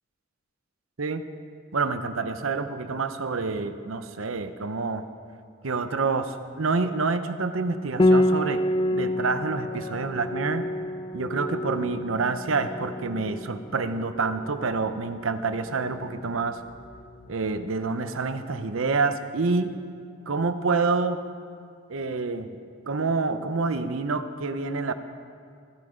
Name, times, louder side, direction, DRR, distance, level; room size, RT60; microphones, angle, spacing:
voice 1, 1.7-5.1 5.6-8.6 8.9-10.6 11.1-16.6 17.3-19.7 20.3-21.2 21.9-22.6 22.9-24.9, right 4 dB, 80° right, 10 dB, 0.8 m, -27 dB
Piano, 8.0-17.3, left 1 dB, 20° left, 0.4 m, -28 dB
15.5 x 15.0 x 5.0 m, 2.3 s
head